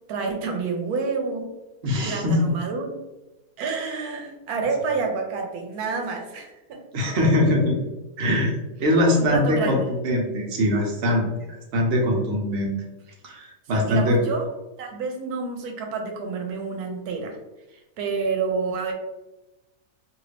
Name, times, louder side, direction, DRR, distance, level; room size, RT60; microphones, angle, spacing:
voice 1, 0.1-1.5 2.0-3.0 3.6-6.8 9.2-9.9 13.7-14.5 14.8-17.4 17.7-18.9, right 4 dB, 85° right, 3 dB, 1.1 m, -29 dB
voice 2, 1.8-2.4 6.9-7.8 8.2-8.5 8.8-12.7 13.2-14.2, left 1 dB, 50° right, -1 dB, 0.9 m, -22 dB
2.7 x 2.6 x 3.2 m, 1.0 s
omnidirectional pair, 1.6 m